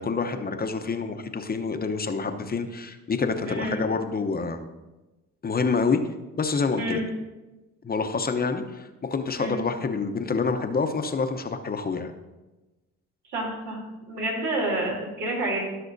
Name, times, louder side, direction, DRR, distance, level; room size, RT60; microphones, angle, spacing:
voice 1, 0.0-4.6 5.4-6.0 6.4-7.0 7.8-12.1, left 4 dB, 30° left, 7 dB, 0.8 m, -27 dB
voice 2, 13.3-13.8 14.1-15.6, right 1 dB, 85° right, -3 dB, 3.2 m, -28 dB
15.5 x 6.1 x 2.7 m, 1.1 s
cardioid pair, 90°, 30 cm